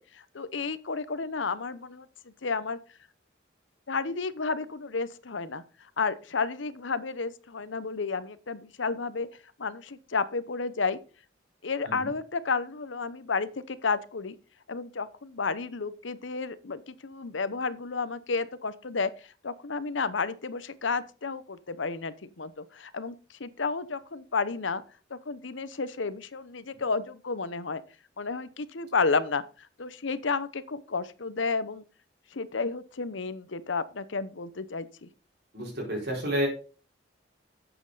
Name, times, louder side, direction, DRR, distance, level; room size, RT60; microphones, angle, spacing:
voice 1, 0.0-2.8 3.9-5.6 6.0-9.3 9.6-11.0 11.6-14.3 14.7-24.8 25.1-27.8 28.2-31.8 32.3-35.1, left 4 dB, 80° left, 15 dB, 0.9 m, -32 dB
voice 2, 35.5-36.5, equal, 55° right, -2 dB, 4.5 m, -30 dB
11.5 x 7.9 x 4.0 m, 0.36 s
head